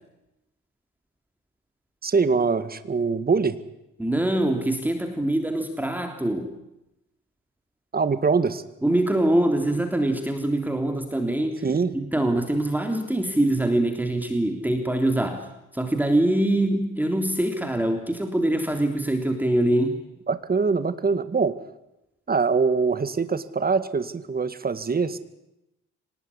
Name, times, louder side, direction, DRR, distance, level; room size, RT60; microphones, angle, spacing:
voice 1, 2.0-3.6 7.9-8.6 11.6-11.9 20.3-21.6 22.3-25.2, right 5 dB, 30° right, 12 dB, 2.0 m, -23 dB
voice 2, 4.0-6.5 8.8-11.7 11.9-20.0, right 1 dB, 5° right, 5 dB, 3.4 m, -24 dB
25.5 x 19.5 x 10.0 m, 0.89 s
cardioid pair, 90°, 30 cm